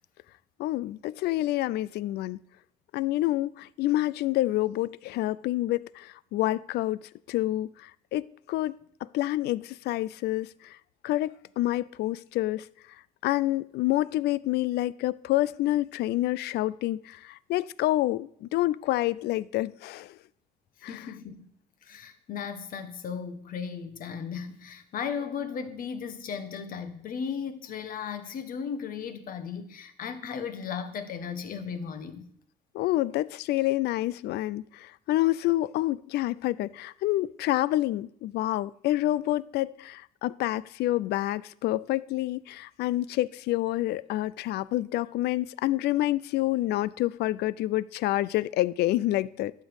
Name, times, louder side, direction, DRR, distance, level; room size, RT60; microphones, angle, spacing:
voice 1, 0.6-2.4 2.9-8.8 9.1-10.8 11.0-12.7 13.2-20.2 20.8-21.1 32.7-49.5, left 16 dB, 75° left, 0.5 m, -28 dB
voice 2, 20.9-21.5 21.8-32.3, left 6 dB, 55° left, 1.4 m, -36 dB
12.5 x 5.3 x 8.0 m
cardioid pair, 110°, 17 cm